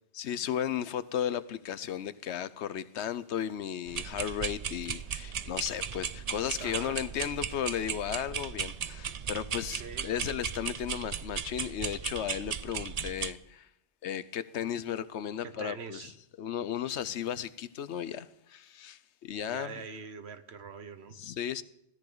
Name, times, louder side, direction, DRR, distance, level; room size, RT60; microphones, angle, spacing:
voice 1, 0.2-13.7 14.0-16.1 16.4-19.7 21.2-21.6, left 9 dB, 80° left, 1.0 m, -35 dB
sound 1, 3.9-13.3, right 7 dB, 45° right, 0.6 m, -36 dB
voice 2, 6.6-7.0 9.7-10.1 15.4-16.1 19.5-21.2, right 5 dB, 70° right, 1.3 m, -43 dB
17.0 x 13.5 x 3.9 m
omnidirectional pair, 1.1 m